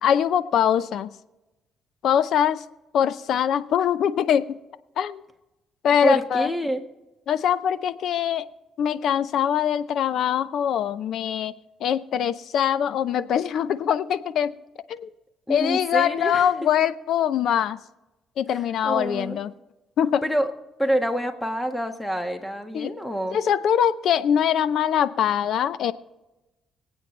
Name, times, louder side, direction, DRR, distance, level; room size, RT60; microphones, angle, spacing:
voice 1, 0.0-1.1 2.0-2.6 2.9-4.6 5.0-5.2 5.8-6.5 7.3-8.4 8.8-11.5 11.8-14.5 15.0-15.1 15.5-17.8 18.4-19.5 20.0-20.2 22.7-22.9 23.3-25.9, left 9 dB, 75° left, 15 dB, 0.6 m, -23 dB
voice 2, 6.0-6.8 15.5-16.5 18.8-19.4 20.2-20.5 20.8-23.4, equal, 5° left, 6 dB, 1.5 m, -26 dB
25.5 x 8.8 x 3.3 m, 1.0 s
cardioid pair, 90°, 0 cm